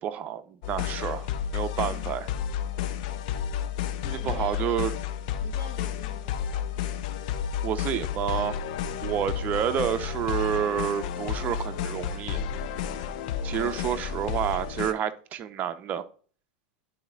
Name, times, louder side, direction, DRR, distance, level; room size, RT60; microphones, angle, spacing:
voice 1, 0.0-1.3 1.5-2.3 4.0-4.9 7.6-8.6 9.0-12.4 13.4-16.0, right 9 dB, 40° right, 0.8 m, -29 dB
sound 1, 0.6-14.9, left 8 dB, 60° left, 0.7 m, -31 dB
voice 2, 1.8-2.3 4.2-4.9 5.4-6.8 13.6-13.9, left 3 dB, 35° left, 2.3 m, -46 dB
10.5 x 4.3 x 2.5 m
hypercardioid pair, 100°, 4 cm